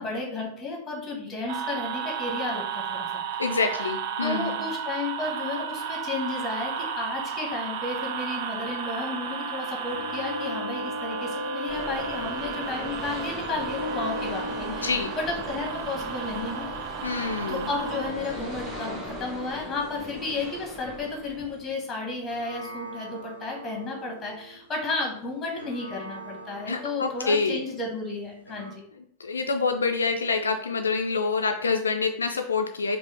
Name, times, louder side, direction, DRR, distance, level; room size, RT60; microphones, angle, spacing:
voice 1, 0.0-3.2 3.5-3.9 4.2-16.7 17.5-28.8, left 3 dB, 15° left, 0 dB, 1.1 m, -33 dB
sound 1, 1.5-18.1, right 7 dB, 50° right, 0.4 m, -34 dB
voice 2, 3.4-4.6 14.7-15.2 17.0-17.7 26.7-27.6 29.2-33.0, left 4 dB, 75° left, 5 dB, 0.3 m, -26 dB
sound 2, 9.9-12.9 13.5-21.9 22.3-24.8 25.6-28.7, left 1 dB, 90° right, 0.9 m, -39 dB
sound 3, 11.7-21.7, right 1 dB, 20° right, 1.4 m, -39 dB
4.8 x 2.0 x 4.2 m, 0.69 s
figure-of-eight pair, 90°, 0 cm